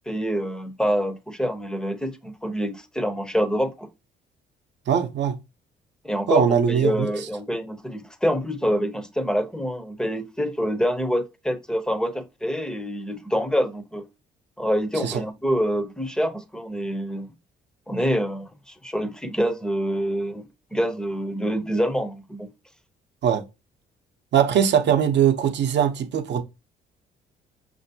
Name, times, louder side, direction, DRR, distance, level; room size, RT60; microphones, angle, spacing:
voice 1, 0.1-3.9 6.0-14.1 14.6-17.3 17.9-22.5, equal, 5° left, 0.6 m, -26 dB
voice 2, 4.9-5.4 6.3-7.2 15.0-15.2 23.2-23.4 24.3-26.4, right 8 dB, 65° right, 0.7 m, -21 dB
5.8 x 2.6 x 2.7 m
cardioid pair, 90°, 20 cm